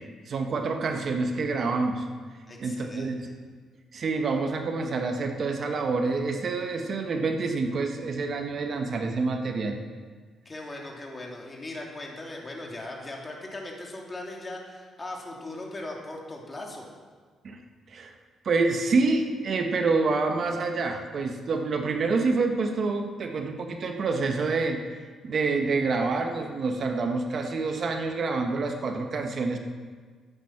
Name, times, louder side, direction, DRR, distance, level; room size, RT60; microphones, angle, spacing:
voice 1, 0.2-2.0 2.6-3.3 3.9-9.8 17.4-17.6 17.9-18.1 18.4-29.6, right 3 dB, 50° right, 4 dB, 1.5 m, -27 dB
voice 2, 2.5-3.2 10.4-16.9, left 2 dB, 25° left, -1 dB, 3.0 m, -39 dB
13.5 x 9.6 x 6.0 m, 1.5 s
cardioid pair, 90°, 0 cm